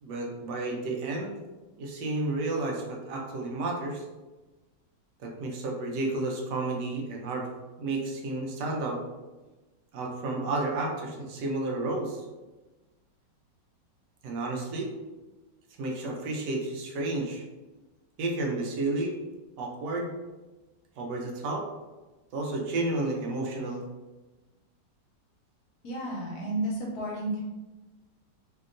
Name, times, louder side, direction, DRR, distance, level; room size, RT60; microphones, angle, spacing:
voice 1, 0.0-1.4 1.8-4.1 5.2-7.5 7.8-9.0 9.9-12.3 14.2-14.9 15.8-17.5 18.2-19.2 19.6-20.1 21.0-21.7 22.3-23.8, right 2 dB, 75° right, 0 dB, 1.2 m, -31 dB
voice 2, 25.8-27.4, right 1 dB, 65° left, -3 dB, 1.0 m, -32 dB
2.8 x 2.7 x 2.5 m, 1.2 s
omnidirectional pair, 1.9 m